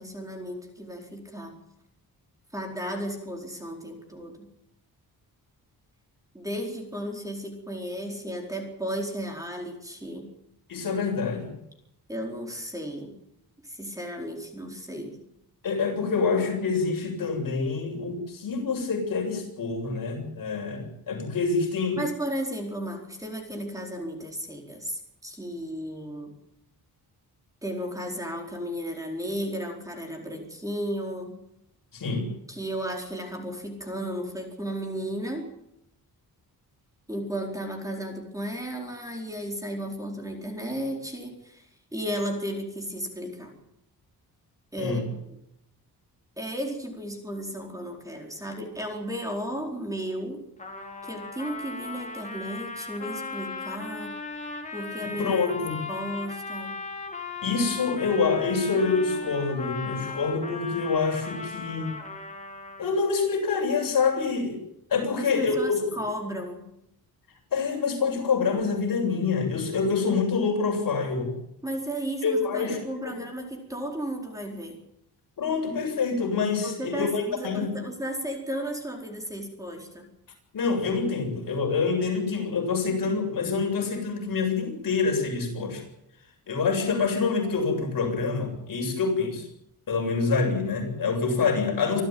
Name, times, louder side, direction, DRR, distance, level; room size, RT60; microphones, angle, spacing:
voice 1, 0.0-1.6 2.5-4.5 6.3-10.3 12.1-13.1 13.6-15.2 22.0-26.3 27.6-31.4 32.5-35.5 37.1-43.6 44.7-45.4 46.4-50.4 51.0-54.1 54.7-55.4 55.9-56.8 65.0-66.7 71.6-74.8 76.6-80.1, equal, 10° right, 2 dB, 4.5 m, -34 dB
voice 2, 10.7-11.6 15.6-22.0 31.9-32.3 44.8-45.1 55.2-55.8 57.4-61.9 62.8-64.6 64.9-65.8 67.5-71.4 72.2-72.8 73.1-73.2 75.4-77.7 80.5-85.8 86.5-89.5 89.9-92.0, left 4 dB, 60° left, 2 dB, 7.5 m, -26 dB
Trumpet, 50.6-63.0, left 4 dB, 20° left, 3.9 m, -37 dB
26.5 x 13.5 x 9.4 m, 0.80 s
wide cardioid pair, 175°, 37 cm